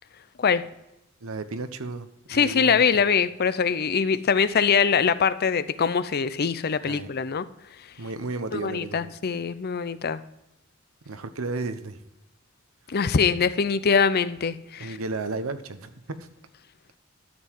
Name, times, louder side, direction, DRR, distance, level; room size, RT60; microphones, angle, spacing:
voice 1, 1.2-2.8 6.8-7.1 8.0-9.2 11.1-12.0 14.8-16.3, right 3 dB, 85° right, 0.9 m, -33 dB
voice 2, 2.3-7.4 8.5-10.2 12.9-15.0, left 6 dB, 50° left, 0.5 m, -23 dB
12.0 x 7.7 x 4.6 m
head